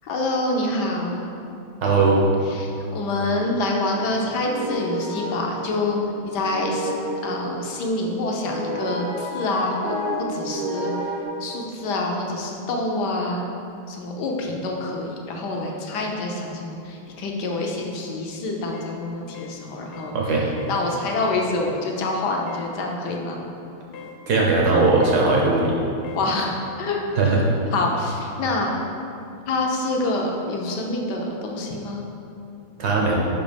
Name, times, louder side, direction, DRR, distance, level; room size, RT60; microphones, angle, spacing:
voice 1, 0.0-1.3 2.5-6.9 7.2-9.9 10.3-10.9 11.4-13.5 13.9-20.2 20.7-23.4 26.1-27.0 27.2-27.3 27.7-28.8 29.5-32.0, left 2 dB, 65° left, 0 dB, 1.1 m, -26 dB
voice 2, 1.8-2.2 20.1-20.5 24.3-25.7 27.1-27.4 32.8-33.1, right 3 dB, 60° right, -2 dB, 1.2 m, -19 dB
sound 1, 3.3-11.2, right 1 dB, 75° right, 1.7 m, -31 dB
sound 2, 18.7-19.0 19.3-19.6 19.9-20.2 20.6-20.8 21.1-21.4 22.5-22.7 23.9-24.2 25.0-25.3 26.0-26.3, left 6 dB, 90° left, 1.6 m, -41 dB
5.3 x 5.2 x 5.1 m, 2.6 s
omnidirectional pair, 2.4 m